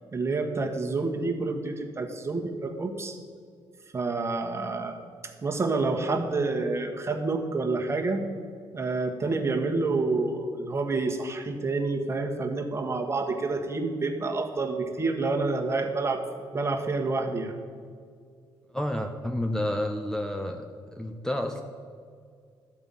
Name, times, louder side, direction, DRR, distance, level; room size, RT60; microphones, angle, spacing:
voice 1, 0.1-3.2 3.9-5.0 5.4-8.2 8.7-16.2 16.5-17.6, right 3 dB, 30° right, 3 dB, 1.4 m, -28 dB
voice 2, 18.7-21.6, left 1 dB, 5° left, 5 dB, 0.8 m, -30 dB
12.0 x 5.4 x 8.9 m, 2.1 s
cardioid pair, 90°, 9 cm